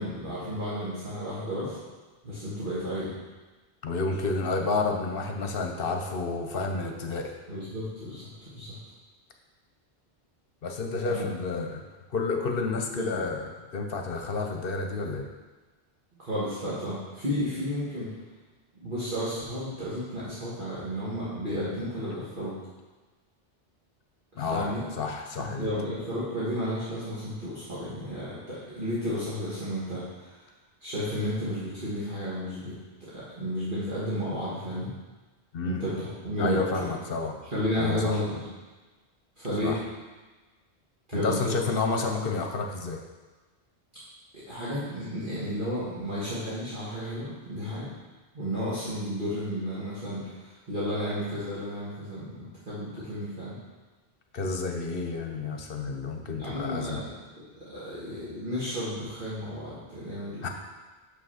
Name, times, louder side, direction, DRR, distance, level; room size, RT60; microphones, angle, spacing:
voice 1, 0.0-1.8 2.2-3.1 7.5-8.8 11.1-11.3 12.9-13.2 16.2-18.1 18.8-22.6 24.3-24.8 25.6-30.4 30.8-32.8 33.1-34.9 35.6-36.9 37.5-38.5 39.4-39.8 41.1-41.6 44.3-47.9 48.3-53.6 56.4-60.5, equal, 50° right, -10 dB, 1.9 m, -32 dB
voice 2, 3.8-7.3 10.6-11.8 12.1-15.3 24.4-24.7 25.0-25.7 35.5-35.8 36.4-37.4 37.8-38.2 39.6-39.8 41.1-43.0 54.3-57.0 60.4-60.5, left 3 dB, 65° left, 3 dB, 1.0 m, -30 dB
6.7 x 5.7 x 5.7 m, 1.3 s
omnidirectional pair, 1.1 m